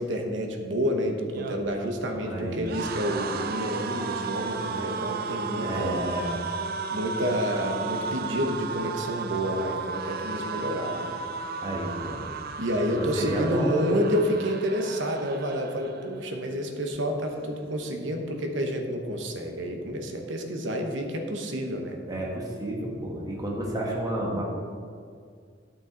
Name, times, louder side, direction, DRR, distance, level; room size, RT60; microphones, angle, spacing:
voice 1, 0.0-6.0 6.9-11.1 12.6-22.0, equal, 80° right, 3 dB, 1.0 m, -29 dB
sound 1, 1.2-16.4 16.7-17.0 17.2-18.0, right 5 dB, 55° right, 0.5 m, -35 dB
voice 2, 2.2-2.6 5.6-6.4 11.6-12.2 12.9-13.8 22.1-24.4, right 1 dB, 20° right, -3 dB, 1.6 m, -31 dB
11.0 x 6.2 x 3.9 m, 2.1 s
head